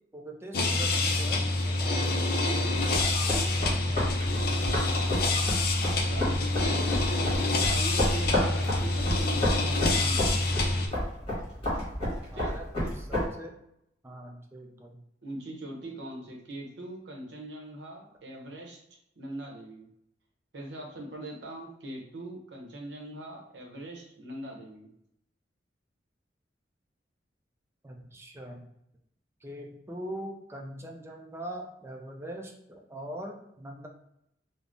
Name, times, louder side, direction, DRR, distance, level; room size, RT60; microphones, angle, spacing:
voice 1, 0.1-2.3 2.6-4.1 12.3-13.5 14.0-15.0 27.8-28.7 29.4-33.9, right 1 dB, 15° right, 2 dB, 0.3 m, -42 dB
sound 1, 0.5-10.9, left 2 dB, 55° left, 0.4 m, -27 dB
sound 2, 2.7-13.3, left 1 dB, 30° left, 1.5 m, -31 dB
voice 2, 2.9-3.4 5.8-7.3 7.6-10.6 12.3-12.5 15.2-18.8 19.2-19.9 20.5-24.9, right 1 dB, 70° right, 0 dB, 0.7 m, -41 dB
3.4 x 2.0 x 2.5 m, 0.78 s
head